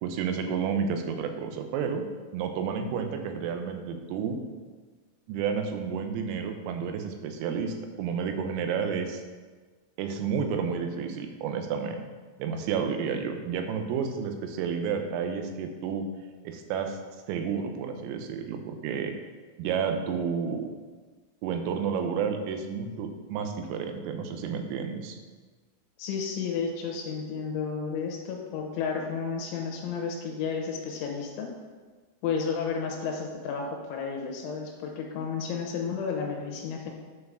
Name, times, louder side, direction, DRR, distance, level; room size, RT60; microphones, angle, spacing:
voice 1, 0.0-2.0 2.3-4.4 5.3-9.2 10.0-12.1 12.4-16.1 16.5-17.0 17.3-19.2 19.6-20.7 21.4-25.2, right 6 dB, 85° right, 6 dB, 3.5 m, -31 dB
voice 2, 26.0-31.5 32.2-36.9, left 5 dB, 75° left, 2 dB, 3.0 m, -32 dB
9.0 x 4.8 x 6.2 m, 1.4 s
omnidirectional pair, 5.9 m